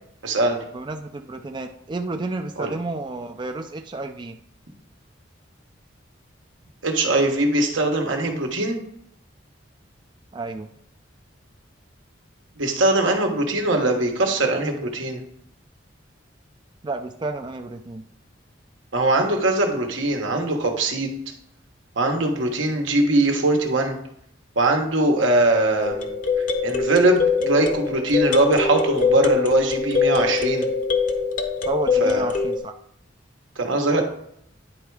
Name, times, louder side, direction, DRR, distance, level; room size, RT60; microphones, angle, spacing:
voice 1, 0.2-0.6 2.6-2.7 6.8-8.8 12.6-15.2 18.9-21.1 22.0-24.0 24.5-26.1 26.6-30.7 32.0-32.2 33.6-34.0, right 2 dB, 85° right, 2 dB, 1.4 m, -21 dB
voice 2, 0.7-4.4 10.3-10.7 16.8-18.0 31.6-32.7, right 2 dB, 25° right, 5 dB, 0.4 m, -31 dB
sound 1, 25.8-32.6, left 5 dB, 40° left, 0.8 m, -23 dB
10.0 x 3.5 x 4.8 m, 0.71 s
head